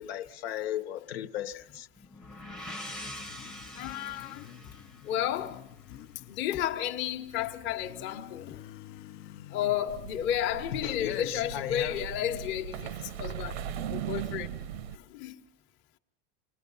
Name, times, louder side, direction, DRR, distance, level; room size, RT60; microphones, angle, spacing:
voice 1, 0.0-1.9 10.8-12.0, left 11 dB, 80° left, 1.3 m, -36 dB
sound 1, 2.0-5.8, left 1 dB, ahead, 0.8 m, -44 dB
Motorcycle, 2.4-15.0, left 12 dB, 55° left, 0.8 m, -51 dB
voice 2, 3.8-4.5 5.0-5.6 6.3-8.6 9.5-14.5 14.9-15.4, left 11 dB, 35° left, 1.1 m, -32 dB
sound 2, 9.9-15.0, right 9 dB, 85° right, 1.1 m, -38 dB
28.0 x 20.5 x 5.5 m
supercardioid pair, 160°, 31 cm